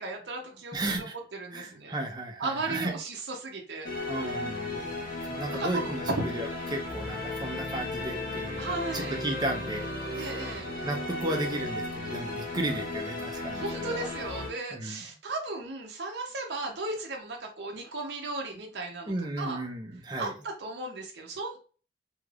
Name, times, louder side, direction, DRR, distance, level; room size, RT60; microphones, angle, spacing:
voice 1, 0.0-1.1 1.3-2.0 2.4-3.9 5.5-6.2 8.6-9.2 10.2-10.7 13.5-19.6 20.2-21.6, right 2 dB, 65° right, 1 dB, 0.7 m, -35 dB
voice 2, 0.7-1.1 1.5-2.9 4.1-9.9 10.1-10.3 10.8-14.1 14.7-15.0 19.1-20.3, right 1 dB, 25° right, 2 dB, 0.6 m, -34 dB
sound 1, 3.8-14.5, left 2 dB, 50° left, 0.7 m, -35 dB
3.2 x 2.8 x 2.4 m, 0.38 s
head